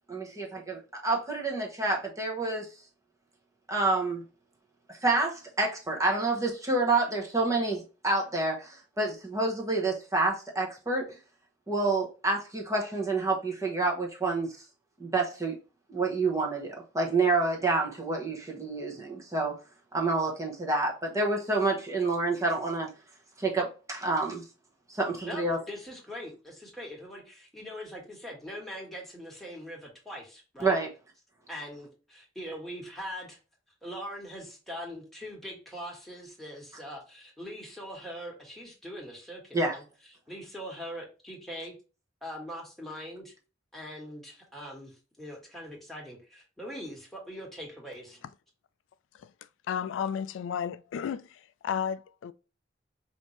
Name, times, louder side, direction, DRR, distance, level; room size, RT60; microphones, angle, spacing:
voice 1, 0.1-2.7 3.7-4.2 5.0-11.1 11.7-14.5 15.0-15.6 15.9-19.5 19.9-22.9 23.4-24.4 24.9-25.6 30.6-30.9 39.5-39.8, right 3 dB, 15° right, 1.0 m, -28 dB
voice 2, 25.2-30.8 31.5-33.4 33.8-39.8 40.3-41.7 42.2-43.3 43.7-44.9 45.2-48.2, equal, ahead, 1.5 m, -42 dB
voice 3, 49.7-52.3, left 8 dB, 85° left, 0.3 m, -33 dB
5.2 x 2.8 x 3.1 m
head